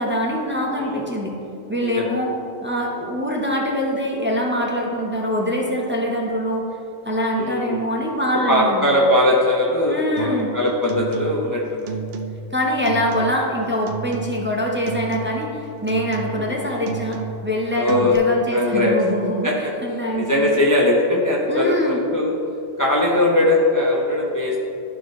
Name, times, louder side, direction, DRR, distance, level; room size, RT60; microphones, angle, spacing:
voice 1, 0.0-1.3 1.7-2.3 2.6-6.6 7.0-8.9 9.9-10.5 12.5-20.6 21.5-22.0, equal, 10° right, -2 dB, 0.6 m, -24 dB
voice 2, 0.7-1.1 1.8-2.1 7.3-7.9 8.5-12.0 13.1-13.2 16.3-16.5 17.7-18.1 18.5-19.0 19.4-19.7 20.2-22.3 22.8-24.7, left 1 dB, 25° left, -3 dB, 0.4 m, -20 dB
sound 1, 10.2-10.5 10.8-11.5 11.8-12.5 12.9-13.5 13.9-14.6 14.9-15.5 15.9-16.5 16.8-17.5 17.9-18.2, right 6 dB, 65° right, 0.7 m, -31 dB
13.0 x 4.5 x 3.1 m, 2.8 s
omnidirectional pair, 1.4 m